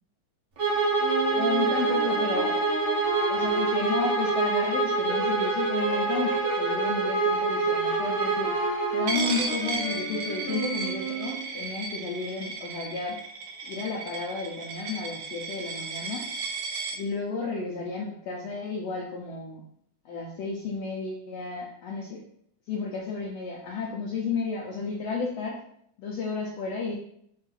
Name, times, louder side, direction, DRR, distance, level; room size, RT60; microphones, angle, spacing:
Bowed string instrument, 0.6-9.1, right 4 dB, 65° right, 1.3 m, -26 dB
sound 1, 1.0-11.5, equal, 45° left, 2.1 m, -33 dB
voice 1, 1.3-2.6 3.3-8.6 8.9-13.2 13.6-16.3 16.9-19.6 20.0-22.2 22.7-25.6 26.0-26.9, left 4 dB, 80° left, -3 dB, 1.5 m, -32 dB
Coin (dropping), 9.1-17.0, right 4 dB, 80° right, 1.6 m, -34 dB
6.4 x 2.7 x 5.6 m, 0.68 s
omnidirectional pair, 3.9 m